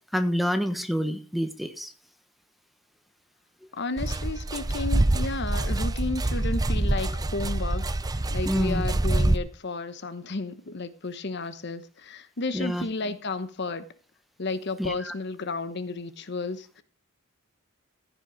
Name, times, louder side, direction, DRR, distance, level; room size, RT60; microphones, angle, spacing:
voice 1, 0.1-1.9 8.5-8.8 12.5-12.8 14.8-15.1, equal, ahead, 1.1 m, -27 dB
voice 2, 3.7-13.8 14.4-16.8, left 3 dB, 55° left, 1.0 m, -33 dB
sound 1, 4.0-9.4, right 1 dB, 20° right, 0.5 m, -26 dB
14.5 x 6.2 x 5.1 m
head